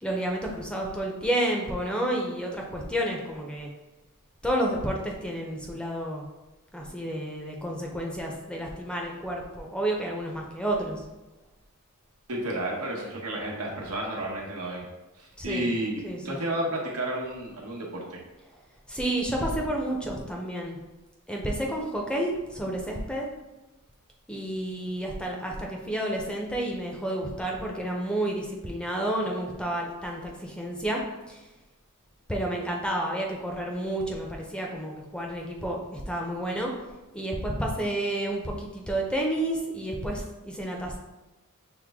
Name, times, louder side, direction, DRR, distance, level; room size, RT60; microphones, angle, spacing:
voice 1, 0.0-3.7 4.4-6.3 6.7-11.0 15.4-15.7 16.0-16.4 18.9-20.8 21.3-23.3 24.3-31.0 31.3-31.4 32.3-41.0, right 1 dB, 5° left, 0 dB, 0.5 m, -30 dB
voice 2, 12.3-14.8 15.2-18.2, right 1 dB, 90° right, -1 dB, 1.0 m, -31 dB
6.2 x 2.1 x 3.5 m, 1.1 s
head